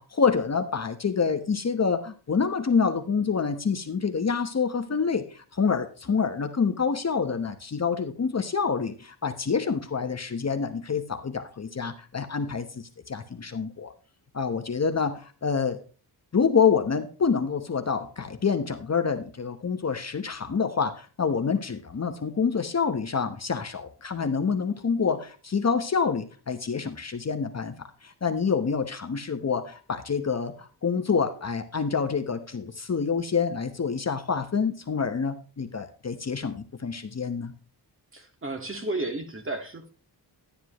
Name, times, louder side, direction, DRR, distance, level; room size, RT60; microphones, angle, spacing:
voice 1, 0.0-13.9 14.3-15.8 16.3-37.5, left 5 dB, 35° left, 8 dB, 1.0 m, -27 dB
voice 2, 38.1-39.9, right 2 dB, 30° right, 6 dB, 1.9 m, -33 dB
11.5 x 10.0 x 3.0 m, 0.36 s
wide cardioid pair, 100°, 43 cm